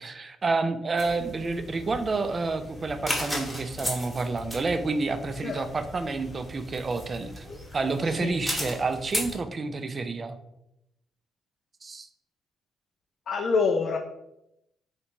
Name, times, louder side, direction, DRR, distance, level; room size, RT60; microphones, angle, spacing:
voice 1, 0.0-7.5 7.7-10.4 11.8-12.1, right 3 dB, 35° right, 9 dB, 0.3 m, -29 dB
sound 1, 1.0-9.3, left 1 dB, 5° left, 1.0 m, -36 dB
voice 2, 13.3-14.0, left 4 dB, 55° left, 3 dB, 0.3 m, -25 dB
3.3 x 2.7 x 2.9 m, 0.84 s
cardioid pair, 90°, 0 cm